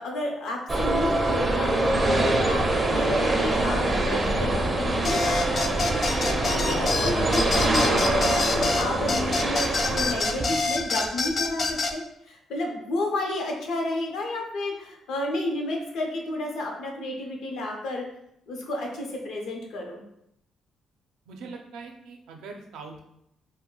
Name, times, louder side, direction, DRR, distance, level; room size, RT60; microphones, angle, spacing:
voice 1, 0.0-12.0 12.3-18.0 18.5-20.0, left 1 dB, 80° left, 1 dB, 0.6 m, -31 dB
sound 1, 0.7-10.7, right 2 dB, 25° right, 0.5 m, -24 dB
sound 2, 5.0-11.9, left 3 dB, 45° left, 0.3 m, -27 dB
voice 2, 21.3-23.1, right 4 dB, 85° right, 2 dB, 0.4 m, -42 dB
2.2 x 2.1 x 3.8 m, 0.77 s
cardioid pair, 90°, 0 cm